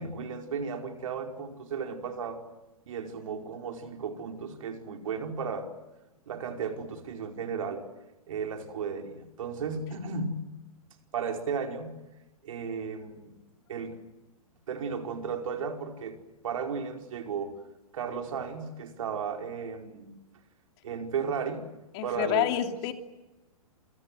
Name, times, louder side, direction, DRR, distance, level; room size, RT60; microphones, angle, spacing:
voice 1, 0.0-2.4 2.9-5.7 6.3-7.8 8.3-10.5 11.1-12.0 12.4-13.3 13.7-14.0 14.7-16.2 16.4-17.6 17.9-20.2 20.8-21.6 22.0-22.5, right 5 dB, 65° right, 4 dB, 5.0 m, -34 dB
voice 2, 21.9-22.9, left 12 dB, 45° left, 6 dB, 3.0 m, -28 dB
28.0 x 26.0 x 7.9 m, 1.0 s
hypercardioid pair, 115°, 19 cm